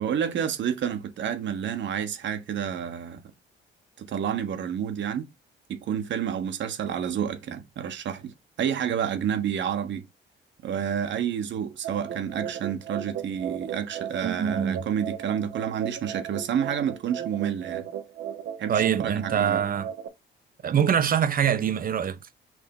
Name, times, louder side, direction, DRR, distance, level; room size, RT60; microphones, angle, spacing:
voice 1, 0.0-3.2 4.0-5.3 5.7-10.1 10.6-17.9 18.6-19.6, right 8 dB, 65° right, 1.2 m, -29 dB
sound 1, 11.8-20.1, right 9 dB, 85° right, 0.9 m, -36 dB
voice 2, 14.2-14.9 18.7-19.9 20.6-22.2, right 8 dB, 45° right, 0.8 m, -24 dB
6.3 x 2.8 x 5.4 m
cardioid pair, 90°, 20 cm